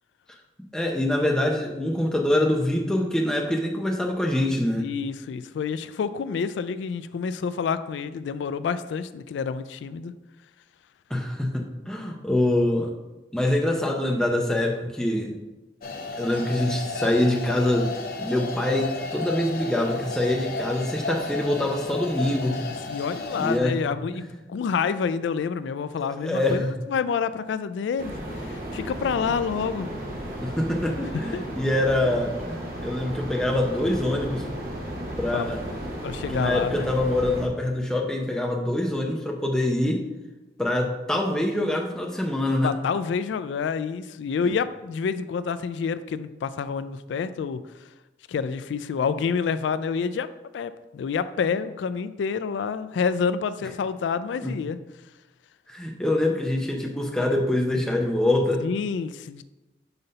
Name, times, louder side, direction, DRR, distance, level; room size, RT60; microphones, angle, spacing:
voice 1, 0.7-4.9 11.1-12.9 13.3-15.3 16.2-17.9 18.2-22.6 23.4-24.3 26.1-26.7 30.4-34.6 35.2-35.6 36.3-40.0 40.6-42.7 54.4-54.5 55.7-58.6, left 1 dB, 5° left, 0 dB, 0.7 m, -25 dB
voice 2, 4.8-10.1 22.9-24.2 24.5-28.1 28.5-29.9 31.3-31.4 35.3-35.5 36.0-36.9 42.6-47.6 48.3-50.3 50.5-54.8 58.6-59.4, left 6 dB, 90° left, 14 dB, 0.3 m, -28 dB
sound 1, 15.8-23.6, left 2 dB, 50° left, 0.6 m, -33 dB
sound 2, 28.0-37.5, right 1 dB, 50° right, 1.2 m, -34 dB
5.6 x 3.9 x 5.4 m, 1.1 s
head